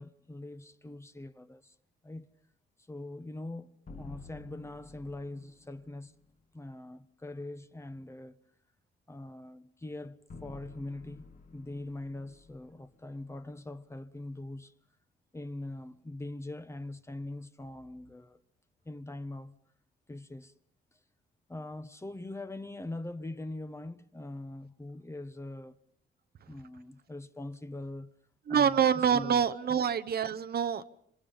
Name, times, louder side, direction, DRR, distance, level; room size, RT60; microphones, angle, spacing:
voice 1, 0.0-1.7 2.0-2.3 2.9-6.1 6.5-8.4 9.1-11.3 11.5-14.7 15.3-18.4 18.8-19.6 20.1-20.5 21.5-25.8 26.5-28.1 28.5-29.4, left 2 dB, 15° left, 1.1 m, -42 dB
sound 1, 3.9-6.0 10.3-13.5, left 3 dB, 40° left, 1.9 m, -51 dB
voice 2, 28.5-30.8, right 8 dB, 50° right, 0.9 m, -26 dB
26.0 x 25.5 x 5.5 m
cardioid pair, 90°, 20 cm